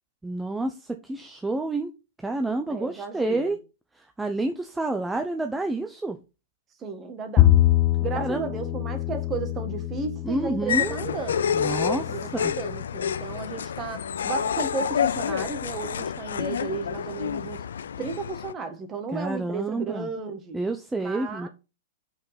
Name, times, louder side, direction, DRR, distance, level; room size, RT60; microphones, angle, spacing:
voice 1, 0.2-1.9 2.2-3.6 4.0-6.2 8.2-8.5 10.2-11.0 11.5-12.5 19.1-20.1 20.5-21.5, right 2 dB, 10° right, 0.7 m, -29 dB
voice 2, 2.7-3.6 6.8-7.5 8.0-11.5 11.9-17.6 18.0-20.6 20.9-21.5, right 4 dB, 25° right, 1.6 m, -34 dB
Bowed string instrument, 7.4-13.7, left 14 dB, 35° left, 0.9 m, -25 dB
sound 1, 10.7-18.5, left 8 dB, 75° left, 0.4 m, -28 dB
5.5 x 4.5 x 5.7 m
hypercardioid pair, 115°, 0 cm